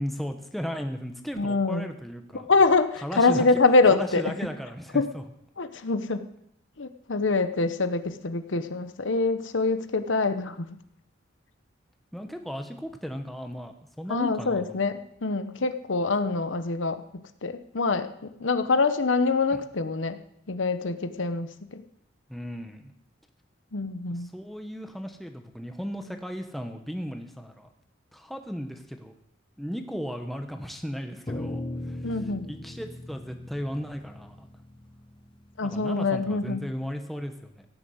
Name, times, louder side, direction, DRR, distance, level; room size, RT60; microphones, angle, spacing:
voice 1, 0.0-2.5 3.0-3.5 3.9-5.2 12.1-14.8 22.3-22.9 24.1-27.7 28.1-29.1 29.6-32.0 32.5-34.5 35.6-37.7, equal, ahead, 5 dB, 1.1 m, -36 dB
voice 2, 1.4-1.9 2.3-4.2 4.9-5.1 5.6-6.2 6.8-10.7 14.1-17.0 17.4-18.1 18.4-20.2 20.5-21.8 23.7-24.3 32.0-32.5 35.6-36.7, left 3 dB, 80° left, 10 dB, 0.9 m, -25 dB
sound 1, 31.3-35.8, left 1 dB, 25° left, 0.9 m, -38 dB
17.0 x 7.1 x 7.9 m, 0.75 s
head